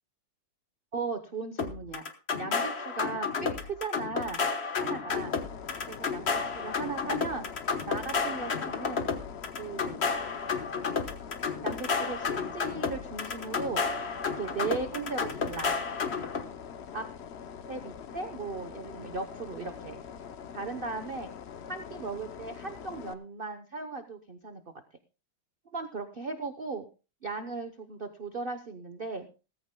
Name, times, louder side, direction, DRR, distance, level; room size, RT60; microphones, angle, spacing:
voice 1, 0.9-2.0 2.4-4.4 4.8-5.4 5.9-7.5 7.9-9.1 9.6-10.0 11.6-13.8 14.4-15.7 16.9-17.1 17.7-20.0 20.5-21.3 21.7-24.6 25.7-26.9 27.2-29.3, right 4 dB, 40° right, 8 dB, 0.8 m, -37 dB
sound 1, 1.6-16.4, left 5 dB, 40° left, 1.2 m, -31 dB
sound 2, 5.1-23.1, left 7 dB, 80° left, 0.5 m, -44 dB
17.5 x 14.5 x 2.2 m, 0.32 s
omnidirectional pair, 2.2 m